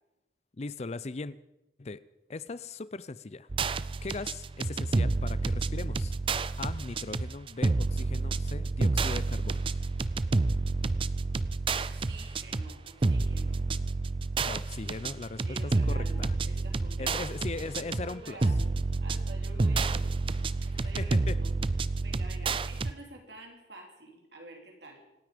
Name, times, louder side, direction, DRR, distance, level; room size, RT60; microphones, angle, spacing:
voice 1, 0.6-1.4 1.8-2.0 2.3-3.5 4.0-6.1 6.6-9.7 14.5-16.3 17.0-18.4 20.7-21.4, left 3 dB, 40° left, 0.5 m, -39 dB
sound 1, 3.5-22.9, right 3 dB, 30° right, 0.4 m, -29 dB
voice 2, 11.8-13.7 15.4-17.4 17.7-18.7 19.0-21.5 22.0-25.0, right 1 dB, 75° right, 3.2 m, -49 dB
26.5 x 9.5 x 5.2 m
head